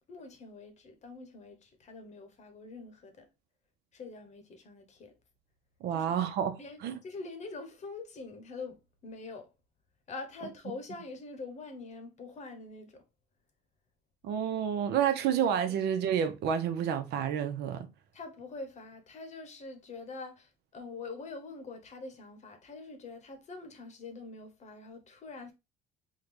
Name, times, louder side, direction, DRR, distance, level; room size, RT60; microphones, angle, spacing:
voice 1, 0.1-3.3 3.9-5.2 5.9-6.1 6.6-9.5 10.1-13.0 18.1-25.5, left 3 dB, 45° left, 0.9 m, -45 dB
voice 2, 5.8-7.0 14.2-17.9, right 8 dB, 75° right, 0.7 m, -29 dB
3.7 x 2.2 x 3.1 m
cardioid pair, 110°, 17 cm